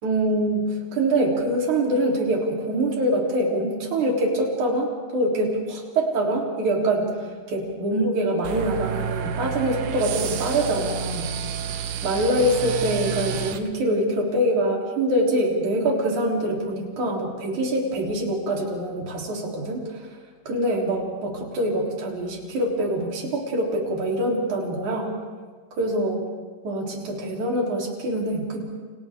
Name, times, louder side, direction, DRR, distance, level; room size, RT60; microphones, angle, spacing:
voice 1, 0.0-7.1 7.5-11.3 12.0-20.1 20.5-25.1 25.8-26.2 26.6-28.6, right 1 dB, 40° right, -2 dB, 4.4 m, -24 dB
sound 1, 8.4-13.6, right 8 dB, 85° right, 1.8 m, -30 dB
30.0 x 30.0 x 3.7 m, 1.5 s
omnidirectional pair, 5.7 m